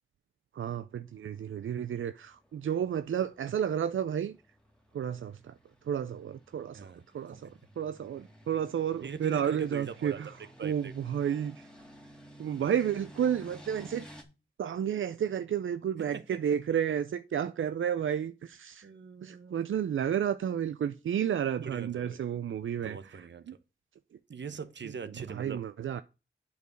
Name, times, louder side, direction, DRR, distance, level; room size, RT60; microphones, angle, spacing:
voice 1, 0.5-4.4 4.9-5.6 5.8-6.9 7.1-10.4 10.6-11.7 12.4-14.1 14.6-18.9 19.2-23.6 25.3-26.0, right 9 dB, 85° right, 0.4 m, -32 dB
sound 1, 1.3-14.2, equal, 5° left, 2.1 m, -54 dB
voice 2, 9.0-10.2 10.6-10.9 16.1-16.4 18.8-19.6 21.6-22.2 22.8-23.5 24.3-25.6, right 6 dB, 65° right, 0.9 m, -41 dB
8.1 x 4.7 x 6.2 m
wide cardioid pair, 60°, 20 cm